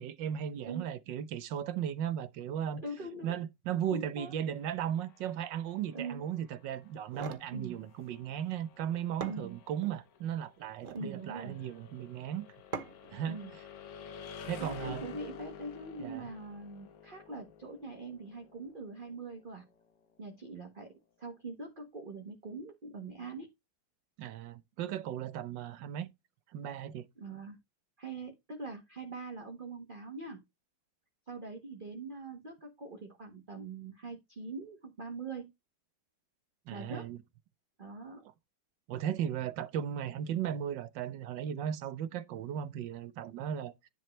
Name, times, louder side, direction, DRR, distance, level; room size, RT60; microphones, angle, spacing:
voice 1, 0.0-2.8 3.2-12.5 13.1-13.4 14.5-15.1 16.0-16.3 24.2-26.1 26.5-27.1 36.7-37.2 38.9-43.9, right 9 dB, 70° right, 1.4 m, -36 dB
voice 2, 2.8-3.4 3.9-4.3 5.9-6.2 7.5-7.8 9.3-9.6 10.9-11.5 13.3-13.5 14.6-19.6 20.2-20.9 21.2-23.5 27.2-27.6 28.0-30.4 31.3-35.5 36.7-37.1 37.8-38.2, right 3 dB, 30° right, 1.4 m, -43 dB
sound 1, 4.4-20.2, left 7 dB, 55° left, 1.3 m, -51 dB
sound 2, 6.9-7.5 8.8-8.9 9.2-10.0 10.7-11.1 12.7-13.2, right 5 dB, 45° right, 0.6 m, -42 dB
10.5 x 5.5 x 3.2 m
omnidirectional pair, 2.2 m